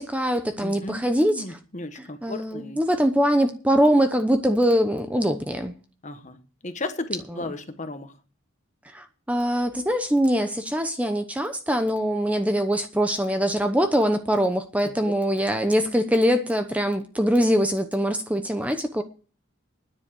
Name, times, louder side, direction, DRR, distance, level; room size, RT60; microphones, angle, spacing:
voice 1, 0.0-1.4 2.2-5.7 8.9-19.0, equal, 5° right, 0.8 m, -23 dB
voice 2, 0.6-2.8 6.0-8.1 14.8-15.1, left 2 dB, 35° left, 1.4 m, -35 dB
10.0 x 7.1 x 8.9 m
head